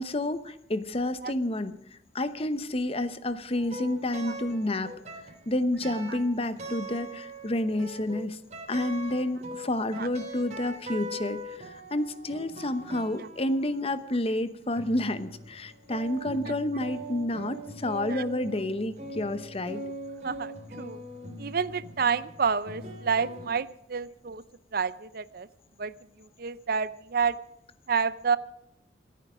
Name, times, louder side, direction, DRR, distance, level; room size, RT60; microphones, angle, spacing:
voice 1, 0.0-4.9 5.5-8.4 8.7-19.8, left 1 dB, 35° left, 12 dB, 0.9 m, -30 dB
sound 1, 3.5-23.5, right 1 dB, 40° right, 3.2 m, -42 dB
voice 2, 20.2-21.0 21.4-24.4 24.7-25.5 25.8-25.9 26.2-27.3 27.9-28.4, right 6 dB, 55° right, 17 dB, 0.6 m, -29 dB
27.0 x 9.3 x 5.1 m, 0.77 s
head